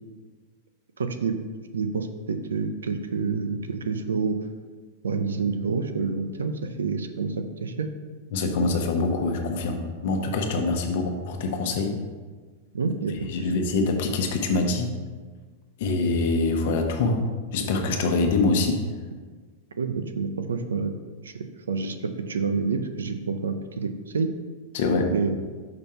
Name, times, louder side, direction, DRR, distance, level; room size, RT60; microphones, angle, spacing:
voice 1, 1.0-1.4 1.7-4.4 5.0-7.9 12.7-13.3 19.8-20.9 21.2-21.3 21.7-24.3 25.1-25.3, right 4 dB, 90° right, 9 dB, 0.5 m, -28 dB
voice 2, 8.3-12.0 13.3-14.9 15.8-17.3 17.5-18.9 24.7-25.1, left 3 dB, 65° left, 4 dB, 0.9 m, -24 dB
5.8 x 3.6 x 5.7 m, 1.5 s
hypercardioid pair, 110°, 0 cm